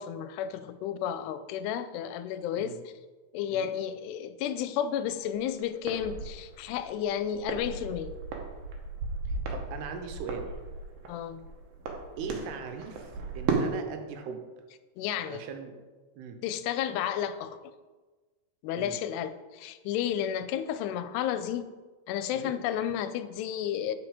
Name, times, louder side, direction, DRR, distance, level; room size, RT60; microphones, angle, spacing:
voice 1, 0.0-2.8 3.3-8.2 11.1-11.4 15.0-15.4 16.4-17.6 18.6-21.7 22.1-23.9, left 9 dB, 85° left, 11 dB, 2.7 m, -32 dB
New Year's Eve firework ambience outside in prague, 5.3-13.7, right 4 dB, 70° right, 2.2 m, -35 dB
voice 2, 9.3-10.5 12.2-13.1 13.4-14.4 15.2-15.7 16.2-16.4 18.7-19.0 22.3-22.6, right 5 dB, 85° right, 5 dB, 2.8 m, -39 dB
7.9 x 6.1 x 5.0 m, 1.3 s
omnidirectional pair, 4.7 m